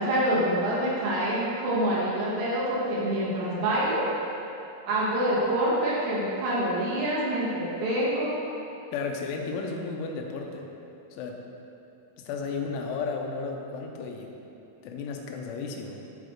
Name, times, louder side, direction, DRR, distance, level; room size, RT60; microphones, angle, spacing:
voice 1, 0.0-4.0 4.9-8.3, right 1 dB, 70° right, -8 dB, 3.4 m, -26 dB
voice 2, 8.9-10.7 11.1-11.4 12.3-14.3 14.8-16.0, left 4 dB, 90° left, 2 dB, 3.2 m, -33 dB
12.5 x 5.1 x 3.1 m, 2.9 s
omnidirectional pair, 5.4 m